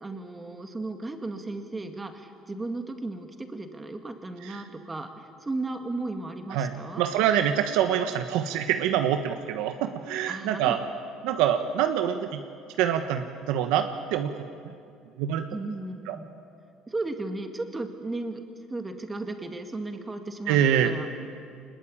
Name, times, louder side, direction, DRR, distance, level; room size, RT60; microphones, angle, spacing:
voice 1, 0.0-7.0 10.3-10.9 15.5-16.3 16.9-18.4 18.7-21.1, right 2 dB, 15° right, 6 dB, 2.1 m, -35 dB
voice 2, 7.0-10.8 11.2-12.4 12.8-14.3 15.2-15.4 16.1-16.2 20.5-20.9, right 9 dB, 85° right, 7 dB, 1.3 m, -25 dB
24.5 x 20.5 x 8.7 m, 2.3 s
cardioid pair, 135°, 0 cm